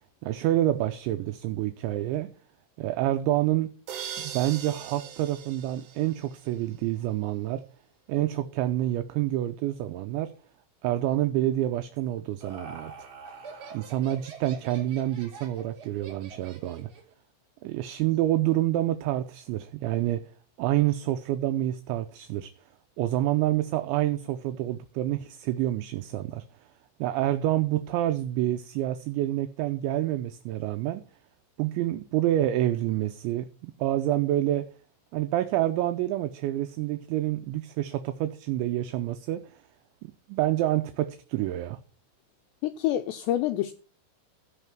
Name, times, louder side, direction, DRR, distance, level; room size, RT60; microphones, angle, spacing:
voice 1, 0.2-2.3 2.8-3.7 4.2-7.6 8.1-10.3 10.8-12.9 13.7-16.9 17.6-20.3 20.6-22.5 23.0-26.5 27.0-31.0 31.6-33.5 33.8-34.7 35.1-39.5 40.3-41.8, right 14 dB, 80° right, 2.8 m, -27 dB
sound 1, 3.9-6.7, right 8 dB, 65° right, 3.6 m, -40 dB
Laughter, 12.0-17.1, right 5 dB, 40° right, 4.2 m, -45 dB
voice 2, 42.6-43.7, left 13 dB, 90° left, 2.4 m, -27 dB
16.0 x 5.4 x 5.9 m
omnidirectional pair, 5.7 m